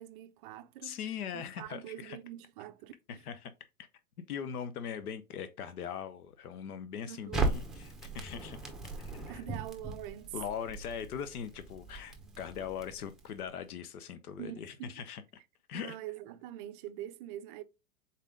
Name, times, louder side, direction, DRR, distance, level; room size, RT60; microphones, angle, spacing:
voice 1, 0.0-1.0 1.3-3.2 7.1-7.5 9.3-10.3 14.4-15.0 15.7-17.6, right 13 dB, 40° right, 0.4 m, -44 dB
voice 2, 0.8-2.2 3.1-3.5 3.8-3.9 4.3-8.6 9.0-9.4 10.3-15.2 15.7-16.0, left 8 dB, 85° left, 0.7 m, -40 dB
Crackle, 7.3-13.5, right 2 dB, ahead, 0.9 m, -38 dB
4.1 x 3.6 x 3.6 m
hypercardioid pair, 120°, 44 cm